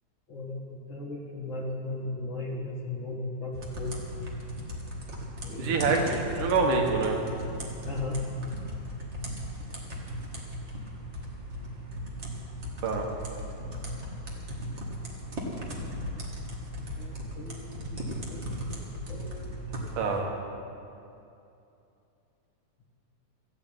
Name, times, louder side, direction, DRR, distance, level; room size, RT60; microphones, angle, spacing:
voice 1, 0.3-4.0 5.4-5.7 7.8-8.5 16.8-18.8 19.1-20.0, left 2 dB, 45° left, -3 dB, 2.1 m, -37 dB
sound 1, 3.5-20.2, equal, 30° right, 1.5 m, -37 dB
voice 2, 5.6-7.2 12.8-13.1 20.0-20.3, right 4 dB, 80° right, 1 dB, 3.0 m, -26 dB
14.0 x 8.6 x 8.9 m, 2.7 s
omnidirectional pair, 3.6 m